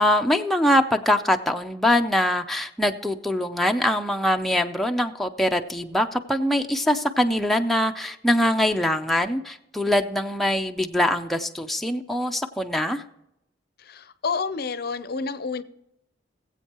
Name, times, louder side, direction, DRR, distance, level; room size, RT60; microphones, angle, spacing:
voice 1, 0.0-13.0, left 1 dB, ahead, 0.5 m, -23 dB
voice 2, 13.8-15.6, left 4 dB, 55° left, 0.6 m, -29 dB
20.0 x 8.1 x 2.9 m
head